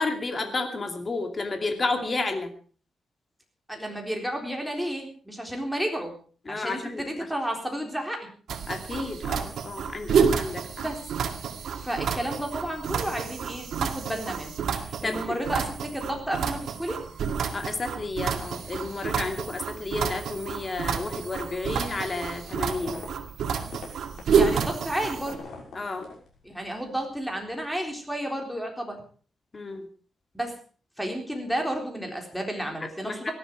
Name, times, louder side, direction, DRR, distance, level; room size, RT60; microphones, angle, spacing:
voice 1, 0.0-2.5 6.5-7.0 8.7-10.6 15.0-15.4 17.5-23.0 25.7-26.1 29.5-29.9 33.0-33.3, left 3 dB, 30° left, 6 dB, 2.6 m, -31 dB
voice 2, 3.7-6.1 6.5-8.3 10.8-11.0 11.8-17.0 24.3-25.4 26.4-29.0 30.3-30.6 31.0-33.3, right 1 dB, ahead, 3 dB, 3.9 m, -32 dB
sound 1, 8.5-25.4, right 6 dB, 80° right, 2.1 m, -29 dB
sound 2, 22.5-26.8 27.1-27.6, left 4 dB, 80° left, 6.3 m, -44 dB
18.0 x 13.0 x 4.6 m, 0.41 s
wide cardioid pair, 145°, 0 cm